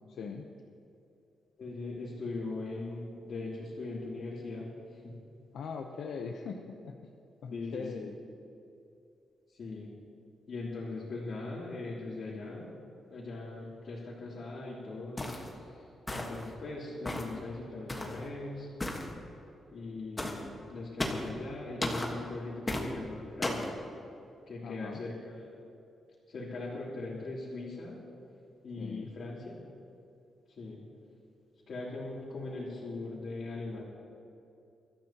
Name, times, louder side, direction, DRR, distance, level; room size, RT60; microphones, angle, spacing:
voice 1, 0.1-0.5 5.5-7.0 7.4-8.2 24.6-25.0 28.8-29.1, left 5 dB, 65° left, 2 dB, 0.8 m, -41 dB
voice 2, 1.6-4.7 5.0-5.2 7.5-8.1 9.6-9.9 10.5-12.7 13.1-15.4 15.7-18.7 19.7-23.8 24.5-25.6 26.3-28.0 28.6-29.6 30.6-30.8 31.7-33.8, left 3 dB, 50° left, -9 dB, 3.2 m, -40 dB
sound 1, 15.2-15.5 16.1-16.5 17.1-17.4 17.9-18.2 18.8-19.1 20.2-20.4 21.0-21.3 21.8-22.1 22.7-22.9 23.4-23.7, left 1 dB, 15° left, 1.4 m, -34 dB
24.0 x 13.5 x 3.0 m, 2.7 s
wide cardioid pair, 160°, 0 cm